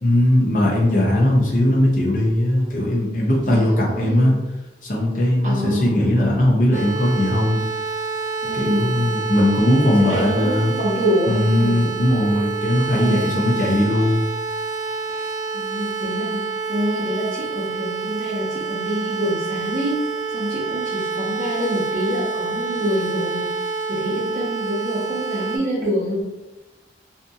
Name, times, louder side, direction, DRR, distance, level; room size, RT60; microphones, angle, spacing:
voice 1, 0.0-4.3 4.8-7.7 8.5-10.7 11.3-14.3, left 1 dB, 45° left, -4 dB, 0.6 m, -19 dB
voice 2, 3.5-4.4 5.4-6.0 8.4-8.9 9.9-11.9 12.9-13.5 15.1-15.3 15.5-16.4 16.7-20.0 20.3-23.5 23.9-26.2, equal, 45° right, -8 dB, 0.9 m, -26 dB
sound 1, 6.7-25.6, right 4 dB, 80° right, 0.7 m, -27 dB
2.6 x 2.6 x 2.3 m, 1.0 s
head